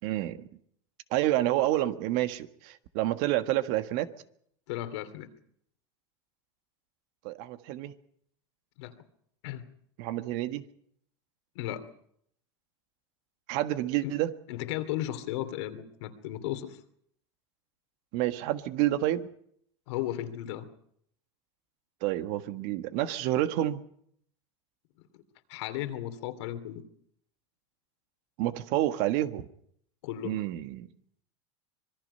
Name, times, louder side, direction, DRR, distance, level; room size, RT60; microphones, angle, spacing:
voice 1, 0.0-0.5 1.1-4.1 7.2-7.9 10.0-10.6 13.5-14.3 18.1-19.3 22.0-23.8 28.4-29.4 30.2-30.9, right 14 dB, 60° right, 10 dB, 1.6 m, -29 dB
voice 2, 4.7-5.3 8.8-8.9 9.4-9.6 11.5-11.9 14.0-14.1 14.5-16.8 19.9-20.7 25.1-25.2 25.5-26.8 30.0-30.5, left 13 dB, 70° left, 9 dB, 2.7 m, -35 dB
25.5 x 21.0 x 5.6 m, 0.67 s
supercardioid pair, 110°, 15 cm